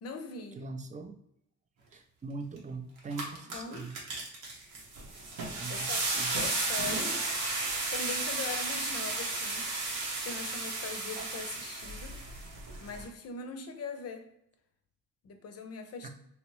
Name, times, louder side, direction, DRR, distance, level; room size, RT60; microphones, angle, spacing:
voice 1, 0.0-0.6 3.5-3.9 5.7-7.2 7.9-9.7 10.0-12.2 12.8-14.3 15.2-16.1, left 5 dB, 55° left, 6 dB, 0.6 m, -41 dB
voice 2, 0.5-1.2 1.9-4.0 5.6-6.3 16.0-16.1, right 3 dB, 25° right, 6 dB, 0.4 m, -41 dB
sound 1, 2.6-2.7 3.0-13.0, right 3 dB, 85° right, 1.0 m, -34 dB
2.9 x 2.9 x 3.0 m, 0.76 s
cardioid pair, 90°, 30 cm